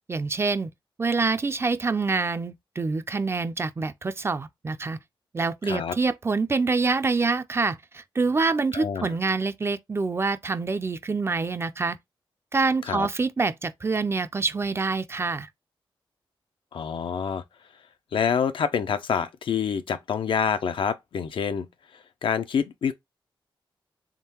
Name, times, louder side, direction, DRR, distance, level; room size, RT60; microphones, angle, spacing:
voice 1, 0.1-0.7 1.0-5.0 5.3-12.0 12.5-15.5, right 4 dB, 30° right, 0.4 m, -26 dB
voice 2, 5.6-6.0 8.7-9.2 12.9-13.1 16.7-17.4 18.1-21.7 22.2-22.9, left 7 dB, 70° left, 0.4 m, -27 dB
3.6 x 3.5 x 2.9 m
cardioid pair, 90°, 9 cm